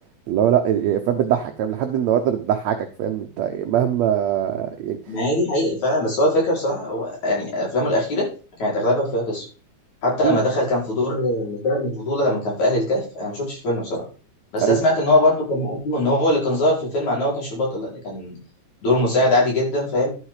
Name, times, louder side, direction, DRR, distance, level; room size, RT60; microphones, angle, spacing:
voice 1, 0.3-5.0 10.2-10.4 14.6-14.8, right 10 dB, 75° right, 6 dB, 1.6 m, -22 dB
voice 2, 5.1-8.3 8.6-9.5 10.0-14.0 14.5-18.4 18.8-20.1, left 1 dB, 55° left, -4 dB, 6.2 m, -21 dB
12.0 x 6.3 x 4.9 m, 0.36 s
omnidirectional pair, 4.1 m